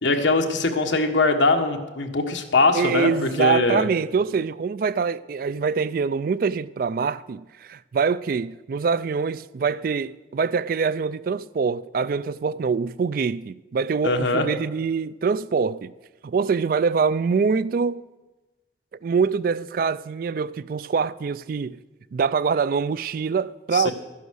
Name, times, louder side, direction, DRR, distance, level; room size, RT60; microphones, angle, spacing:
voice 1, 0.0-3.9 14.0-14.5 23.7-23.9, left 3 dB, 90° left, 1.4 m, -21 dB
voice 2, 2.7-15.9 16.2-18.0 19.0-21.8 22.1-23.9, right 5 dB, 50° right, 0.3 m, -24 dB
12.0 x 10.5 x 6.4 m
head